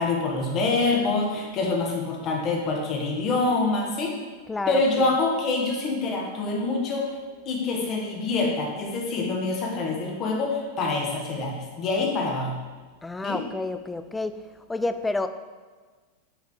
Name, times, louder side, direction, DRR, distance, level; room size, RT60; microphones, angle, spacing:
voice 1, 0.0-4.2 4.7-7.1 7.4-12.5 13.2-13.4, left 3 dB, 35° left, 0 dB, 1.6 m, -26 dB
voice 2, 4.5-5.1 13.0-14.4 14.7-15.3, left 2 dB, 10° left, 10 dB, 0.4 m, -29 dB
7.2 x 5.5 x 4.9 m, 1.4 s
figure-of-eight pair, 90°, 0 cm